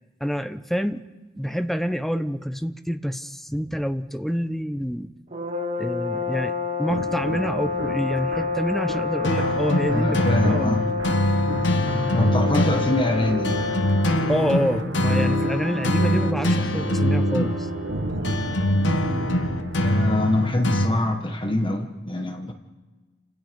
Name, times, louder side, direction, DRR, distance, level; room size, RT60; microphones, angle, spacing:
voice 1, 0.2-1.0 1.3-5.1 5.8-6.5 6.8-10.8 12.7-12.8 14.3-17.7, equal, ahead, 10 dB, 0.8 m, -27 dB
sound 1, 5.3-14.3, left 5 dB, 40° right, 2.3 m, -28 dB
sound 2, 6.9-20.6, right 1 dB, 75° right, 1.5 m, -32 dB
sound 3, 9.2-20.9, equal, 70° left, 1.3 m, -24 dB
voice 2, 9.9-10.9 12.1-13.6 19.7-22.5, left 1 dB, 30° left, 5 dB, 1.6 m, -24 dB
29.5 x 17.0 x 5.4 m, 1.2 s
head